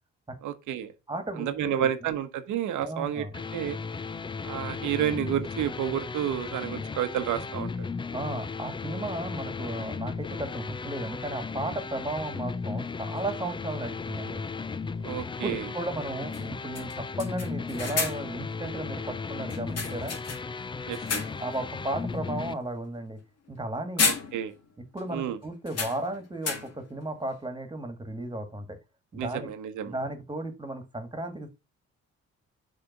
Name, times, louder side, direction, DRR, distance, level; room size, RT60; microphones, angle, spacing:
voice 1, 0.4-0.9 1.4-3.2 3.5-3.8 4.4-7.9 15.0-15.7 20.9-21.2 24.0-24.5 25.1-25.4 29.1-29.9, right 10 dB, 85° right, 1.1 m, -30 dB
voice 2, 1.1-2.1 2.8-3.3 8.1-14.4 15.4-20.1 21.4-23.2 23.5-24.1 24.9-28.8 29.1-29.5 29.9-31.5, right 1 dB, 15° right, 1.8 m, -35 dB
sound 1, 3.3-22.5, left 4 dB, 15° left, 0.4 m, -35 dB
sound 2, 13.2-13.3 15.3-15.4 15.8-15.9 16.3-16.5 16.7-18.4 19.5-20.6 20.9-21.6 22.0-22.2 23.5-23.7 24.0-24.7 25.0-25.1 25.7-26.9, left 5 dB, 55° left, 2.0 m, -32 dB
6.6 x 3.4 x 5.8 m
cardioid pair, 90°, 30 cm